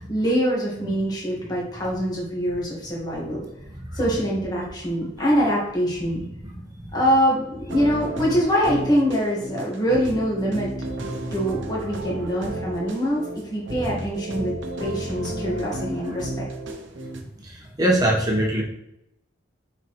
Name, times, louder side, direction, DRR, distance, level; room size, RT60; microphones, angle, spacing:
voice 1, 0.0-3.5 3.9-6.2 6.9-10.7 11.3-14.5 14.8-16.3, equal, 20° left, -4 dB, 1.6 m, -24 dB
voice 2, 6.4-6.9 17.8-18.6, right 1 dB, 20° right, -2 dB, 1.3 m, -22 dB
sound 1, 7.7-17.2, right 1 dB, 80° right, 0.9 m, -33 dB
6.7 x 4.4 x 3.2 m, 0.83 s
head